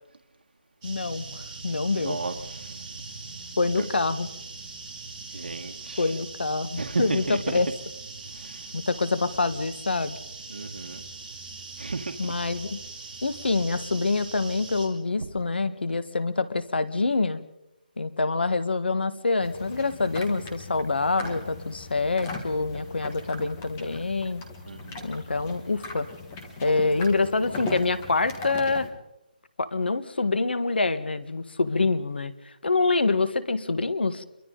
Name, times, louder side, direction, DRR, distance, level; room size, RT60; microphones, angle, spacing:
voice 1, 0.8-2.2 3.6-4.3 6.0-7.7 8.7-10.2 12.2-12.8 13.2-17.4 18.0-24.4 25.0-26.1 26.6-28.9 29.6-32.3 32.6-34.2, left 3 dB, 85° left, 13 dB, 1.6 m, -26 dB
sound 1, 0.8-14.9, right 3 dB, 25° right, 4.7 m, -41 dB
voice 2, 1.9-2.8 3.7-3.9 5.3-6.2 6.7-7.6 8.2-8.7 10.5-11.0 11.8-12.3 24.7-25.1 26.8-27.0, right 3 dB, 80° right, 3 dB, 1.6 m, -34 dB
sound 2, 19.4-28.9, left 2 dB, 15° left, 1.5 m, -39 dB
28.0 x 23.5 x 4.0 m, 0.91 s
hypercardioid pair, 175°, 5 cm